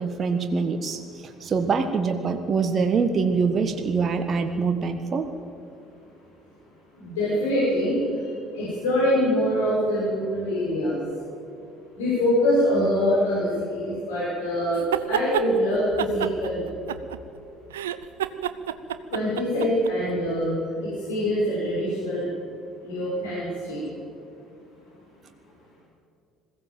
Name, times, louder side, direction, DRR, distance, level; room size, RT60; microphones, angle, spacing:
voice 1, 0.0-5.3, right 5 dB, 40° right, 6 dB, 1.6 m, -24 dB
voice 2, 7.0-8.1 8.5-11.0 12.0-16.6 19.1-22.3 22.8-23.8, equal, 80° left, -9 dB, 6.2 m, -24 dB
sound 1, 14.7-15.5 16.0-17.4 17.7-19.9, right 11 dB, 85° right, 0.6 m, -28 dB
21.5 x 16.5 x 7.7 m, 2.6 s
hypercardioid pair, 55°, 0 cm